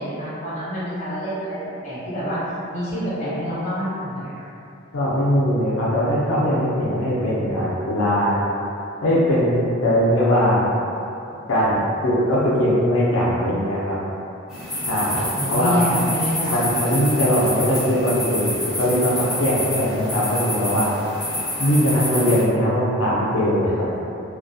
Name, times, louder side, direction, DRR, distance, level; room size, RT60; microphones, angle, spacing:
voice 1, 0.0-1.6 1.8-2.4 2.7-4.5 15.4-16.5 17.1-17.2, equal, 35° left, -10 dB, 0.7 m, -27 dB
voice 2, 4.9-8.4 9.0-10.7 11.5-14.0 14.9-15.8 16.5-20.9 21.6-23.9, equal, 80° left, -7 dB, 0.5 m, -20 dB
sound 1, 14.5-22.4, left 1 dB, 5° right, 0.8 m, -28 dB
2.3 x 2.2 x 2.5 m, 2.8 s
head